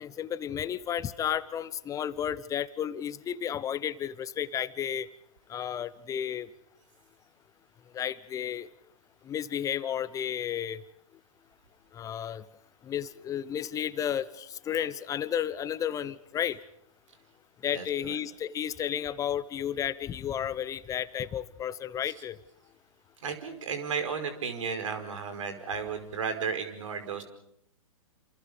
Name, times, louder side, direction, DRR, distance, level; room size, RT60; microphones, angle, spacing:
voice 1, 0.0-5.1 5.5-6.5 7.9-8.7 9.2-10.8 11.9-12.5 12.8-16.6 17.6-22.4, left 9 dB, 20° left, 16 dB, 0.9 m, -32 dB
voice 2, 23.2-27.2, right 6 dB, 65° right, 8 dB, 5.1 m, -33 dB
28.5 x 27.0 x 5.2 m, 0.74 s
hypercardioid pair, 120°, 18 cm